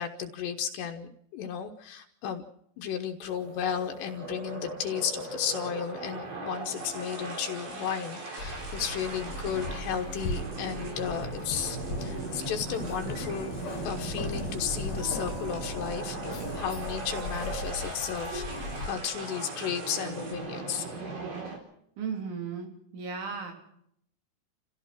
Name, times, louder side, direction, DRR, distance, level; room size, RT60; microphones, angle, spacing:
voice 1, 0.0-2.4 2.8-13.5 13.8-20.9, left 8 dB, 75° left, 4 dB, 3.2 m, -34 dB
sound 1, 3.2-21.6, right 3 dB, 50° right, 5.5 m, -39 dB
sound 2, 6.6-20.3, right 3 dB, 70° right, 7.2 m, -48 dB
Keys jangling, 8.4-18.9, left 1 dB, 40° left, 2.6 m, -38 dB
voice 2, 22.0-23.5, right 5 dB, 90° right, 3 dB, 5.7 m, -35 dB
28.5 x 15.5 x 6.0 m, 0.71 s
omnidirectional pair, 5.2 m